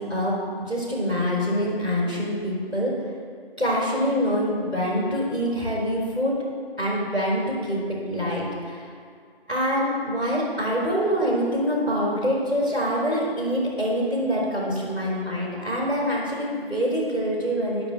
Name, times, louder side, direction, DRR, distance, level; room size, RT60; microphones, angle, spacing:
voice 1, 0.0-3.0 3.6-6.4 6.8-8.9 9.5-17.9, equal, 10° right, -19 dB, 3.3 m, -25 dB
11.0 x 6.0 x 7.4 m, 2.2 s
figure-of-eight pair, 175°, 31 cm